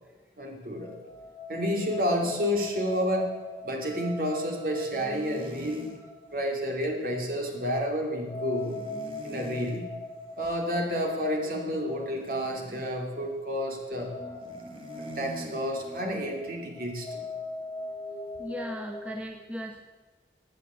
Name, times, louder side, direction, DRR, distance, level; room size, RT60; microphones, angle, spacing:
voice 1, 0.4-1.0 1.5-3.3 3.6-5.9 6.3-8.8 9.2-9.9 10.4-14.1 15.1-17.2, equal, 50° right, 1 dB, 2.8 m, -30 dB
sound 1, 0.8-19.2, left 2 dB, 15° left, 2.6 m, -41 dB
sound 2, 2.2-2.4 3.0-3.1 4.9-6.0 8.7-9.8 12.2-12.9 14.4-15.6, right 1 dB, 30° right, 2.1 m, -43 dB
voice 2, 18.4-19.8, equal, 10° right, 3 dB, 0.9 m, -37 dB
15.5 x 9.2 x 8.2 m, 1.3 s
head